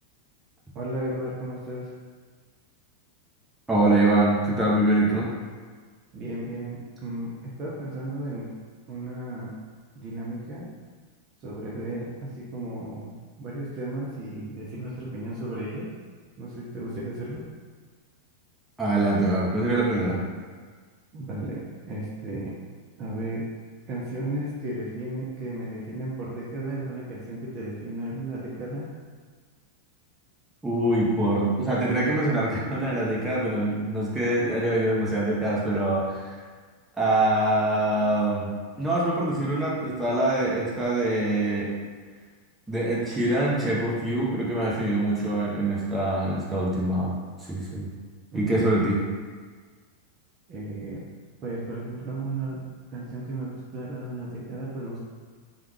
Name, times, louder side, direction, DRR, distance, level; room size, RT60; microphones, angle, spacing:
voice 1, 0.7-1.9 6.1-8.5 8.9-9.5 10.0-10.7 11.4-15.9 16.4-17.4 21.1-22.6 23.0-23.5 23.9-28.9 48.3-48.6 50.5-51.0 51.4-52.7 52.9-55.0, right 1 dB, 35° right, -6 dB, 0.7 m, -34 dB
voice 2, 3.7-5.3 18.8-20.2 30.6-36.4 37.0-38.5 38.8-41.7 42.7-47.1 47.4-47.9 48.3-49.0, right 1 dB, 10° right, -6 dB, 1.0 m, -24 dB
3.4 x 2.4 x 3.1 m, 1.6 s
hypercardioid pair, 100°, 0 cm